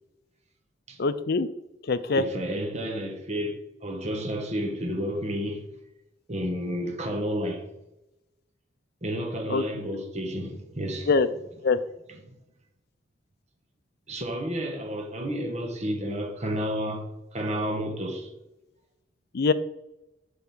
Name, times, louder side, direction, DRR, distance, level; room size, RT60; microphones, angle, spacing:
voice 1, 1.0-1.5 1.9-2.2 9.5-10.0 11.1-11.3 11.6-11.8 19.3-19.5, left 4 dB, 55° left, 0.5 m, -23 dB
voice 2, 2.1-5.7 6.3-7.7 9.0-11.1 12.1-12.4 14.1-18.3, equal, 35° right, 1.2 m, -31 dB
7.0 x 3.9 x 6.0 m
head